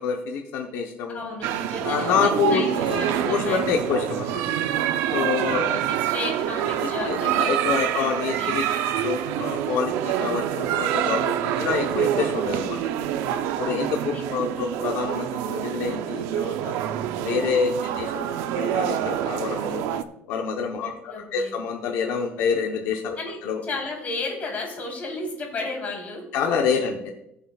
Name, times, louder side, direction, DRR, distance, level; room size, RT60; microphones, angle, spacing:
voice 1, 0.0-1.2 1.8-4.4 5.1-5.6 6.8-8.6 9.0-12.8 13.6-16.8 17.2-17.7 18.0-19.8 20.3-23.6 26.3-27.1, left 6 dB, 75° left, 2 dB, 0.9 m, -27 dB
voice 2, 1.1-2.7 3.0-3.6 5.4-7.5 7.9-8.7 12.4-13.1 13.6-14.2 17.7-18.1 20.8-21.5 23.2-26.2 26.7-26.9, left 3 dB, 35° left, -1 dB, 3.5 m, -34 dB
sound 1, 1.4-20.0, right 10 dB, 80° right, 0.6 m, -26 dB
20.0 x 6.9 x 2.4 m, 0.83 s
cardioid pair, 140°, 4 cm